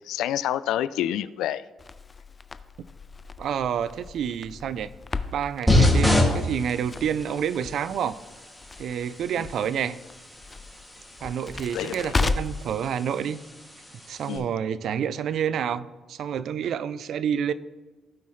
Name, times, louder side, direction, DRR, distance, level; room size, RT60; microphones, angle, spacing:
voice 1, 0.0-1.6 9.4-9.5 11.7-12.1 14.3-14.5, left 12 dB, 90° left, 0.3 m, -28 dB
Crackle, 1.8-12.7, left 4 dB, 30° left, 0.5 m, -35 dB
voice 2, 3.4-4.9 5.3-8.2 8.8-10.0 11.2-13.4 14.1-17.5, right 8 dB, 70° right, 0.4 m, -28 dB
sound 1, 5.7-14.4, left 1 dB, ahead, 2.3 m, -28 dB
16.5 x 5.5 x 3.2 m
cardioid pair, 90°, 0 cm